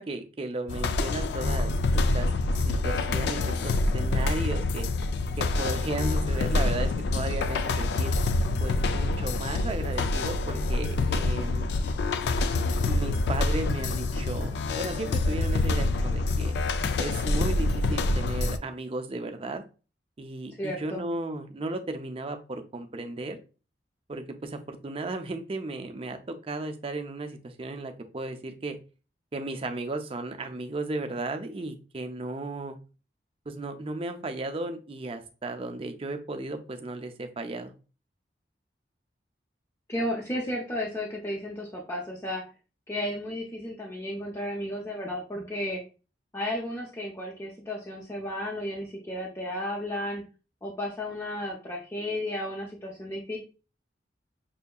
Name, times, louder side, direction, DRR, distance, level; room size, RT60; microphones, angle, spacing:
voice 1, 0.0-2.3 2.6-4.9 5.4-8.1 8.6-11.7 12.8-16.6 17.0-19.6 20.2-23.4 24.1-28.8 29.3-32.8 33.5-37.7, right 2 dB, 30° right, 6 dB, 0.4 m, -35 dB
sound 1, 0.7-18.6, left 2 dB, 65° left, 0.3 m, -26 dB
voice 2, 20.6-21.1 39.9-42.4 42.9-45.8 46.3-50.2 50.6-53.4, left 1 dB, 15° left, -3 dB, 0.6 m, -33 dB
5.5 x 2.7 x 2.2 m, 0.34 s
head